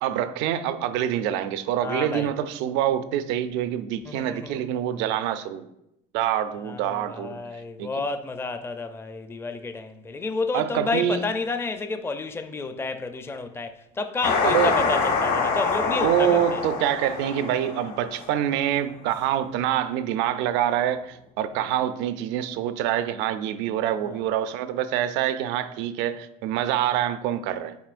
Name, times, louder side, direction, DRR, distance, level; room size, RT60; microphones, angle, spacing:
voice 1, 0.0-5.7 6.1-7.4 7.8-7.9 10.5-11.2 14.4-14.7 15.9-27.8, right 11 dB, 75° right, 0.5 m, -26 dB
voice 2, 1.8-2.3 4.0-4.6 6.6-16.6 24.0-24.2, left 3 dB, 15° left, 0.5 m, -31 dB
sound 1, 14.2-18.5, left 4 dB, 60° left, 1.4 m, -25 dB
9.2 x 4.3 x 2.5 m
supercardioid pair, 105°, 19 cm